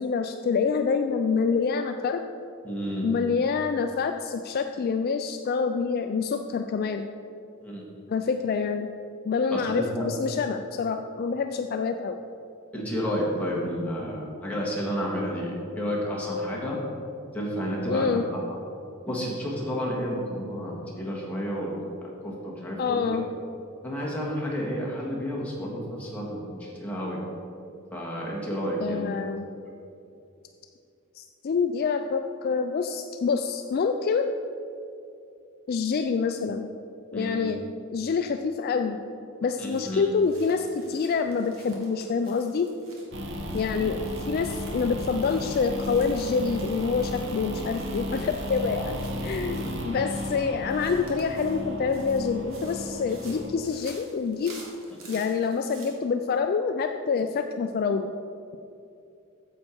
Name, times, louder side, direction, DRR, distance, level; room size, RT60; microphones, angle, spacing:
voice 1, 0.0-2.2 3.0-7.1 8.1-8.9 9.2-12.2 17.9-18.2 22.8-23.3 28.8-29.5 31.2-34.4 35.7-36.7 37.1-37.6 37.9-39.0 39.4-42.7 43.5-54.5 55.1-58.1, left 5 dB, 45° left, 6 dB, 0.3 m, -27 dB
voice 2, 2.6-3.1 7.6-7.8 9.5-10.1 12.7-16.8 17.3-18.4 19.1-23.2 23.8-27.2 27.9-29.1 37.1-37.4 39.6-40.1 49.6-49.9, equal, 5° left, -5 dB, 1.7 m, -31 dB
sound 1, 39.7-55.9, right 2 dB, 75° right, 1.9 m, -52 dB
sound 2, 43.1-53.5, equal, 55° right, 1.0 m, -34 dB
9.1 x 7.4 x 4.5 m, 2.6 s
head